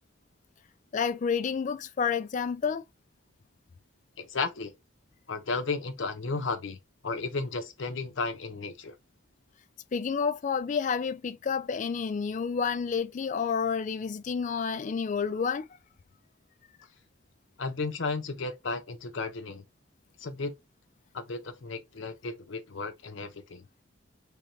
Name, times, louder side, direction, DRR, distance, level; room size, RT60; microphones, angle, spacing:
voice 1, 0.9-2.8 9.9-15.7, left 6 dB, 40° left, 0.3 m, -29 dB
voice 2, 4.2-4.7 5.3-6.8 7.0-9.0 17.6-19.6 20.2-20.5 21.1-23.6, left 3 dB, 65° left, 0.7 m, -34 dB
3.4 x 3.3 x 2.7 m
head